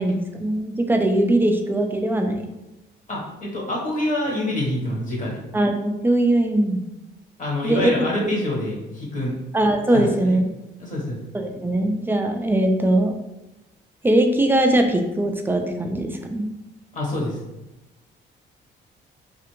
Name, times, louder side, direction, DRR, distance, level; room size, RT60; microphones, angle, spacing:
voice 1, 0.0-2.4 5.5-6.8 7.6-7.9 9.5-10.5 11.3-13.1 14.0-16.4, right 1 dB, 10° right, 4 dB, 0.3 m, -20 dB
voice 2, 3.1-5.4 7.4-9.4 9.9-10.4 10.8-11.2 16.9-17.4, left 1 dB, 40° left, -4 dB, 1.0 m, -26 dB
2.5 x 2.4 x 2.9 m, 0.99 s
cardioid pair, 90°, 20 cm